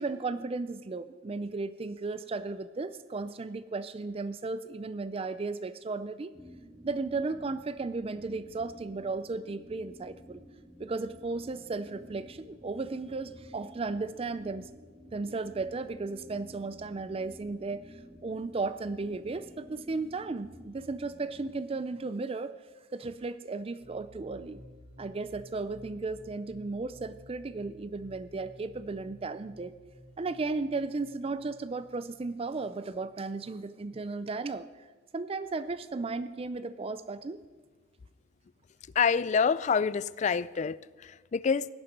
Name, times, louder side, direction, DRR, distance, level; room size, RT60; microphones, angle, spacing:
voice 1, 0.0-6.3 6.8-10.4 10.8-14.7 15.1-22.5 22.9-24.6 25.0-29.7 30.2-34.7 35.1-37.4, right 3 dB, 30° right, 14 dB, 0.4 m, -35 dB
sound 1, 6.3-21.6, equal, 15° right, 2.3 m, -52 dB
sound 2, 23.8-33.4, equal, 85° right, 2.3 m, -54 dB
voice 2, 39.0-41.7, left 6 dB, 40° left, 19 dB, 0.3 m, -27 dB
17.0 x 11.0 x 5.3 m, 1.4 s
head